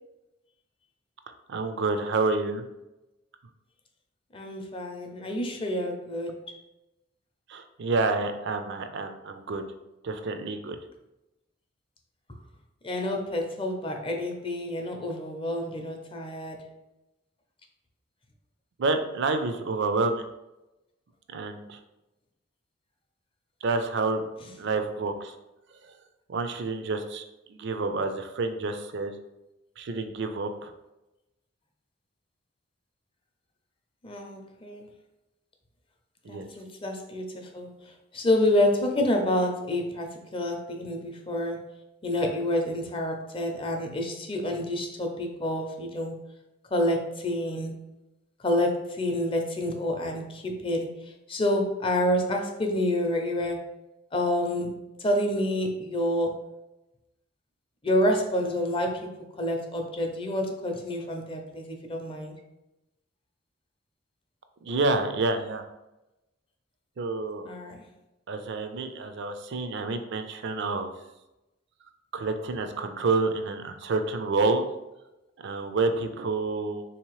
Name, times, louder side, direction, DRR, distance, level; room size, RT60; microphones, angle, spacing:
voice 1, 1.5-2.6 7.5-9.7 10.0-10.8 18.8-20.3 21.3-21.8 23.6-24.2 24.6-25.3 25.8-25.9 26.3-29.1 29.8-30.7 36.2-36.5 64.6-65.6 67.0-67.5 68.3-70.9 72.1-74.7 75.4-76.8, right 3 dB, 60° right, 8 dB, 0.4 m, -28 dB
voice 2, 4.3-6.4 12.8-16.6 34.0-34.9 36.3-37.7 38.1-41.6 42.0-46.2 46.7-47.8 48.4-50.9 51.3-53.7 54.1-56.4 57.8-62.3 67.5-67.8, left 1 dB, 25° left, 3 dB, 0.5 m, -28 dB
3.9 x 2.8 x 3.1 m, 0.95 s
head